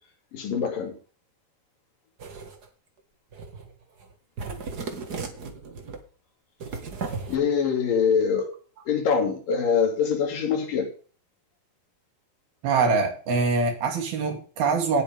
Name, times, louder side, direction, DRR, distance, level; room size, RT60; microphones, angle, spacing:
voice 1, 0.3-1.0 7.3-8.5 8.9-10.9, left 6 dB, 65° left, 4.2 m, -24 dB
sound 1, 2.2-2.7 3.3-3.7 4.0-4.1 4.4-6.0 6.6-7.4, right 4 dB, 45° right, 1.3 m, -35 dB
voice 2, 12.6-15.0, right 4 dB, 80° right, 4.4 m, -24 dB
18.0 x 8.0 x 3.5 m
omnidirectional pair, 4.3 m